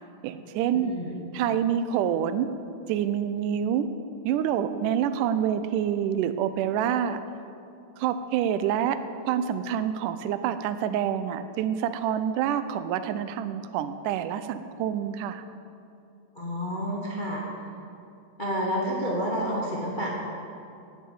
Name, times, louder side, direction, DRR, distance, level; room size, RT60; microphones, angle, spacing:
voice 1, 0.2-0.9 1.3-2.5 2.9-3.9 4.2-7.2 8.0-9.0 9.3-15.4, right 9 dB, 80° right, 11 dB, 2.1 m, -27 dB
voice 2, 0.8-1.2 16.3-17.4 18.4-20.1, equal, 35° left, -4 dB, 0.7 m, -29 dB
11.0 x 8.5 x 8.6 m, 2.6 s
omnidirectional pair, 3.9 m